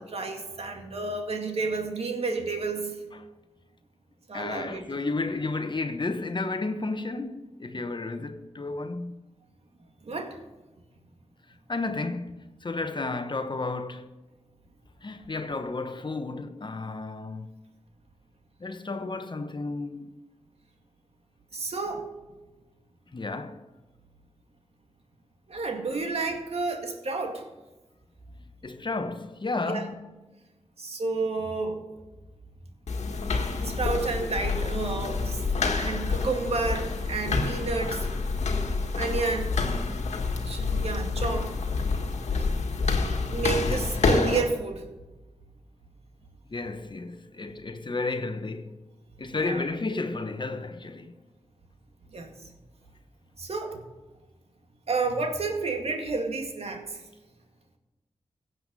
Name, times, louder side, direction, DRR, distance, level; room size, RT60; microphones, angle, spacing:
voice 1, 0.0-3.0 4.3-4.8 10.0-10.4 21.5-22.1 25.5-27.4 29.7-29.9 30.8-31.8 33.6-35.4 35.8-38.1 39.0-39.6 40.4-41.5 43.3-44.8 49.4-49.6 52.1-52.5 53.4-53.8 54.9-57.0, right 3 dB, 60° right, 2.2 m, -30 dB
voice 2, 4.3-9.2 11.7-14.1 15.0-17.5 18.6-20.1 23.1-23.6 28.6-30.1 43.6-43.9 46.5-48.8 49.2-51.2, left 3 dB, 45° left, 1.2 m, -32 dB
sound 1, 32.9-44.4, left 4 dB, 75° left, 1.7 m, -28 dB
16.0 x 8.0 x 5.4 m
cardioid pair, 40°, 12 cm